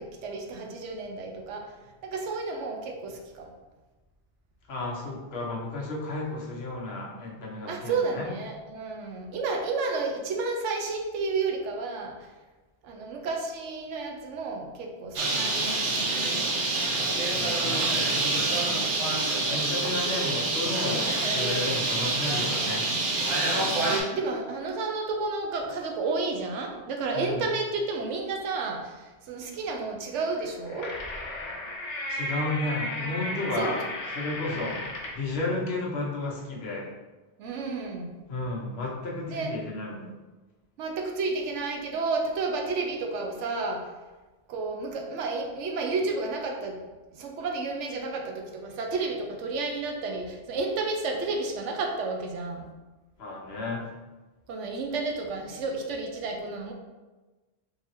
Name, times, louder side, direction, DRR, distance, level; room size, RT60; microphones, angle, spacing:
voice 1, 0.0-1.7 2.0-3.5 7.7-12.3 12.8-15.8 23.7-30.9 33.6-33.7 34.5-34.8 37.4-38.2 39.3-39.5 40.8-43.9 44.5-46.8 47.1-52.7 54.5-56.7, right 3 dB, 85° right, 2 dB, 0.9 m, -31 dB
voice 2, 4.7-8.3 17.3-18.8 19.5-22.9 27.1-27.4 32.1-33.8 34.1-36.9 38.3-40.1 53.2-53.9, left 2 dB, 60° left, -2 dB, 1.0 m, -33 dB
Bird, 15.2-24.0, right 2 dB, 55° right, 0.7 m, -26 dB
sound 1, 30.4-35.3, left 1 dB, 85° left, 1.0 m, -35 dB
3.7 x 2.7 x 2.9 m, 1.2 s
omnidirectional pair, 1.2 m